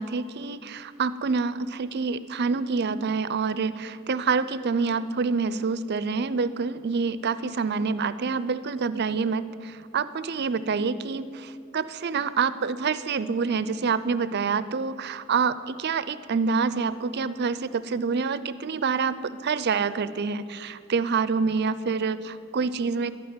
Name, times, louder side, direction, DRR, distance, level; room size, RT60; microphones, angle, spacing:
voice 1, 0.0-23.1, right 5 dB, 55° right, 15 dB, 0.5 m, -27 dB
12.0 x 9.3 x 9.7 m, 2.4 s
head